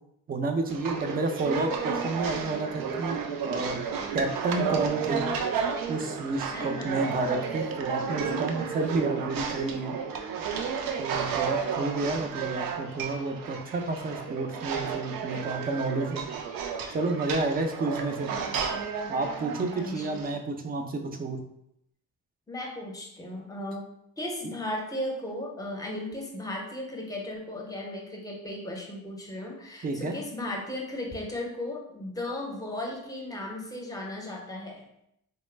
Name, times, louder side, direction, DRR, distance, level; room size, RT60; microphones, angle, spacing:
voice 1, 0.3-3.8 4.1-5.3 5.9-10.0 11.0-16.3 16.9-18.3 19.1-21.4 29.8-30.2, right 3 dB, 25° right, 5 dB, 0.4 m, -30 dB
sound 1, 0.7-20.3, right 6 dB, 85° right, 0.5 m, -32 dB
voice 2, 6.5-6.9 19.7-20.3 22.5-23.9 24.2-34.8, left 1 dB, 10° left, 0 dB, 0.7 m, -36 dB
3.1 x 2.1 x 3.2 m, 0.78 s
cardioid pair, 105°, 33 cm